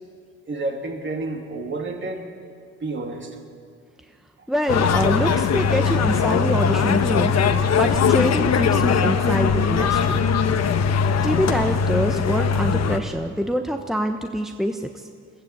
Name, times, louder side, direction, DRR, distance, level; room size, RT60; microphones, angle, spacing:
voice 1, 0.5-2.3 2.8-3.4, right 2 dB, 40° right, 2 dB, 3.2 m, -30 dB
voice 2, 4.5-7.3 7.7-10.2 11.2-15.1, equal, ahead, 5 dB, 1.1 m, -25 dB
sound 1, 4.7-13.0, left 6 dB, 60° left, 1.4 m, -20 dB
21.0 x 15.5 x 8.2 m, 2.1 s
cardioid pair, 90°, 30 cm